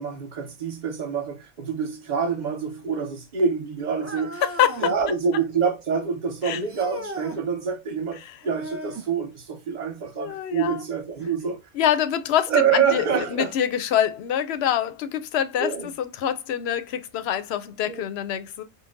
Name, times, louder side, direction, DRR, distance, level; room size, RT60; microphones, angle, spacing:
voice 1, 0.0-4.4 4.8-11.6 12.5-13.5 15.6-15.9 17.9-18.0, right 6 dB, 40° right, 0.8 m, -26 dB
sound 1, 4.0-5.0 6.7-7.4 8.4-9.1 11.2-11.3 12.1-12.2 13.2-13.3, equal, 15° right, 0.5 m, -36 dB
voice 2, 4.4-4.9 6.4-6.6 8.2-8.4 10.2-10.8 11.7-13.1 13.3-18.6, left 10 dB, 65° left, 0.8 m, -25 dB
5.3 x 2.2 x 2.4 m
omnidirectional pair, 1.3 m